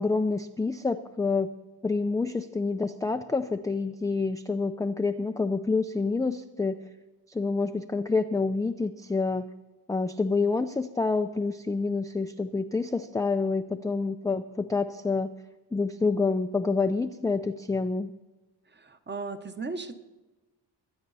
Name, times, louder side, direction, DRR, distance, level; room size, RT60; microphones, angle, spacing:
voice 1, 0.0-1.5 1.8-6.8 7.3-9.5 9.9-15.3 15.7-18.1, left 4 dB, 10° left, 7 dB, 0.3 m, -27 dB
voice 2, 18.7-20.0, right 4 dB, 25° right, 9 dB, 1.0 m, -36 dB
23.0 x 8.9 x 4.1 m, 1.1 s
wide cardioid pair, 150°, 44 cm